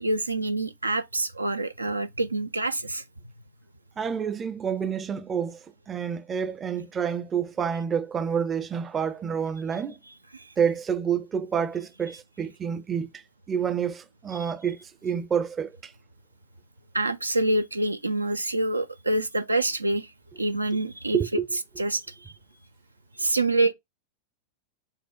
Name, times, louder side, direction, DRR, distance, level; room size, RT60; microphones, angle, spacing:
voice 1, 0.0-3.0 10.3-10.5 12.1-12.2 14.3-14.5 16.9-20.1 20.4-21.2 21.8-22.3 23.2-23.7, right 2 dB, 80° right, 0.3 m, -26 dB
voice 2, 4.0-5.6 5.9-10.0 10.6-13.1 13.5-15.9 21.1-21.5, right 7 dB, 20° right, 0.5 m, -28 dB
4.7 x 2.1 x 4.1 m
figure-of-eight pair, 90°, 0 cm